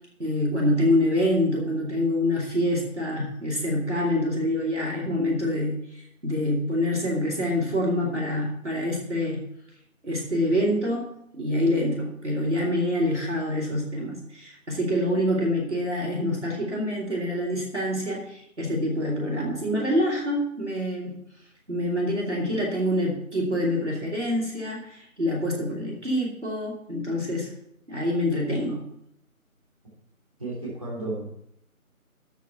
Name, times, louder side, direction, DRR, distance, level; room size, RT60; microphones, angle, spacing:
voice 1, 0.2-9.4 10.0-21.2 21.7-27.5 27.9-28.8, left 1 dB, 55° right, -3 dB, 2.8 m, -26 dB
voice 2, 30.4-31.3, right 2 dB, 25° right, -7 dB, 3.2 m, -33 dB
8.3 x 6.4 x 7.6 m, 0.76 s
figure-of-eight pair, 175°, 43 cm